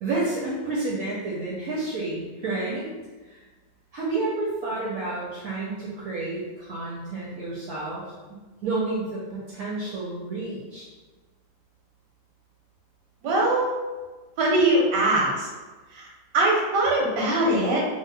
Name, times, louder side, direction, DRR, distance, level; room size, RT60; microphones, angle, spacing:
voice 1, 0.0-2.9 3.3-3.4 3.9-8.0 8.3-10.8, right 2 dB, 70° right, -6 dB, 0.9 m, -30 dB
voice 2, 13.2-13.7 14.4-15.5 15.9-16.1 16.3-17.8, right 2 dB, 90° right, -2 dB, 1.3 m, -22 dB
2.8 x 2.2 x 3.2 m, 1.3 s
omnidirectional pair, 1.9 m